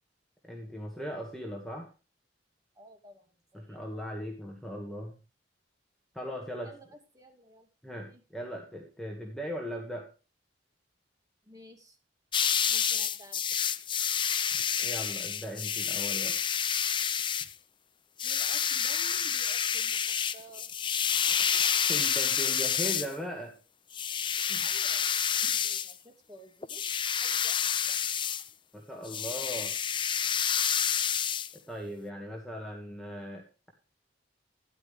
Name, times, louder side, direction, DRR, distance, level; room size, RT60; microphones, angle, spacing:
voice 1, 0.5-1.9 3.5-5.2 6.1-6.7 7.8-10.1 14.8-16.4 21.9-23.6 24.5-24.7 28.7-29.7 31.7-33.7, equal, 5° left, 1 dB, 1.9 m, -39 dB
voice 2, 2.7-3.8 6.6-7.7 8.0-8.2 11.4-12.0 12.7-13.4 18.2-20.7 24.6-26.9 27.2-28.1, right 1 dB, 20° right, 2 dB, 2.8 m, -53 dB
sound 1, 12.3-17.5 18.2-23.1 23.9-25.9 26.6-28.5 29.1-31.5, left 8 dB, 25° left, 0.5 m, -29 dB
13.0 x 11.0 x 3.4 m, 0.32 s
head